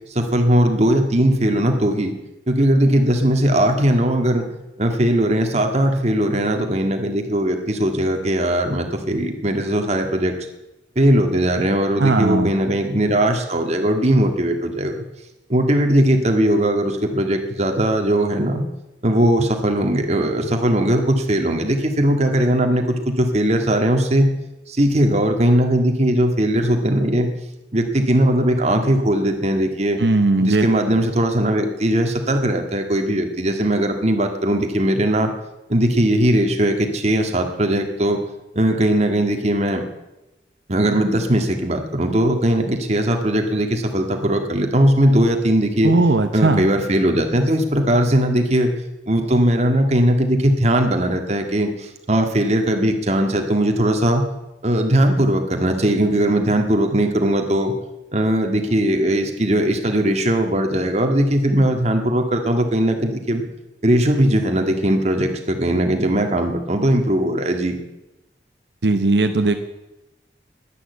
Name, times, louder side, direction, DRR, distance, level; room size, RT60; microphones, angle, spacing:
voice 1, 0.1-2.1 2.5-4.5 4.8-10.3 10.9-15.0 15.5-18.6 19.0-24.3 24.7-27.3 27.7-30.0 30.4-35.3 35.7-38.2 38.5-39.8 40.7-45.9 46.3-48.7 49.1-54.2 54.6-57.7 58.1-63.4 63.8-67.8, right 1 dB, 40° right, 4 dB, 1.8 m, -19 dB
voice 2, 12.0-12.5 30.0-30.7 45.8-46.7 68.8-69.5, right 2 dB, 75° right, 7 dB, 0.8 m, -17 dB
11.5 x 11.0 x 8.2 m, 0.97 s
head